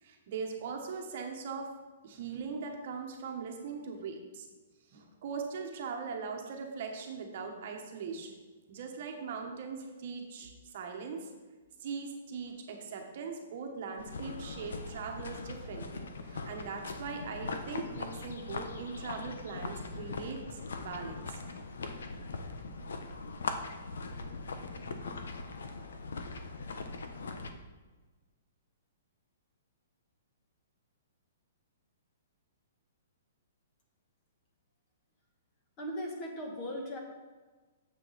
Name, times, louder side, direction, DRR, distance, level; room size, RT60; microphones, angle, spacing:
voice 1, 0.0-1.7 2.0-4.5 4.9-8.3 8.7-11.3 11.8-21.4, right 5 dB, 40° right, 2 dB, 1.2 m, -40 dB
sound 1, 14.0-27.5, left 3 dB, 90° left, 1.0 m, -40 dB
voice 2, 35.8-37.0, equal, 20° left, 1 dB, 1.4 m, -38 dB
9.5 x 7.5 x 4.1 m, 1.3 s
hypercardioid pair, 175°, 0 cm